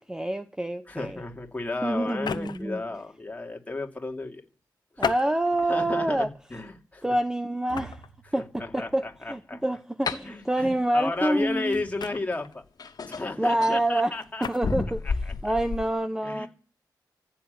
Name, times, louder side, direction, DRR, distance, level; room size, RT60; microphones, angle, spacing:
voice 1, 0.0-1.2 1.8-2.8 5.0-6.3 7.0-8.0 8.3-11.8 13.4-16.5, right 1 dB, 10° right, 0.9 m, -27 dB
voice 2, 0.9-4.4 5.0-5.1 5.7-7.2 8.3-8.4 8.6-9.6 10.2-12.6 13.1-14.4 15.4-15.5 16.2-16.5, left 3 dB, 20° left, 2.7 m, -33 dB
sound 1, 2.1-2.7 5.0-5.7 6.4-6.6 7.7-8.1 10.0-10.3 12.0-12.5 14.2-14.6, left 7 dB, 75° left, 0.9 m, -33 dB
sound 2, 7.7-9.2 11.7-12.3, right 4 dB, 85° right, 3.8 m, -49 dB
sound 3, 10.1-10.2 12.1-12.2 12.8-13.8 14.6-15.9, left 4 dB, 55° left, 2.0 m, -31 dB
15.0 x 8.8 x 9.3 m
wide cardioid pair, 95°, 7 cm